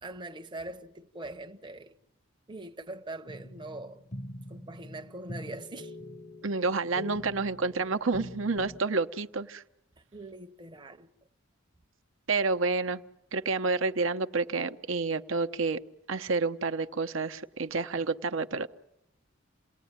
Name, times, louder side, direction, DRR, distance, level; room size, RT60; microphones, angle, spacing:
voice 1, 0.0-2.0 2.5-4.0 4.5-6.0 10.1-11.1, right 2 dB, 20° right, 0.9 m, -42 dB
sound 1, 3.3-8.8, left 1 dB, 35° left, 0.9 m, -44 dB
voice 2, 6.4-9.6 12.3-13.0 13.3-15.8 16.1-18.7, right 3 dB, 65° right, 0.9 m, -29 dB
28.5 x 18.5 x 9.6 m
head